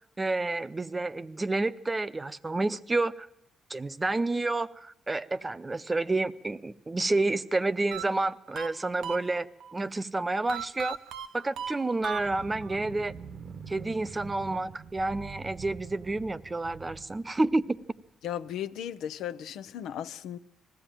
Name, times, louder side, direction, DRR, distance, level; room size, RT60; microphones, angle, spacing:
voice 1, 0.2-3.3 3.7-9.5 9.7-11.0 11.3-13.2 13.7-17.6, right 2 dB, 20° right, 0.7 m, -29 dB
sound 1, 7.9-9.7 10.5-12.8, right 9 dB, 80° right, 0.8 m, -39 dB
sound 2, 12.1-18.1, right 6 dB, 55° right, 1.0 m, -45 dB
voice 2, 18.2-20.4, left 10 dB, 85° left, 0.7 m, -36 dB
20.0 x 15.0 x 8.9 m
cardioid pair, 90°, 0 cm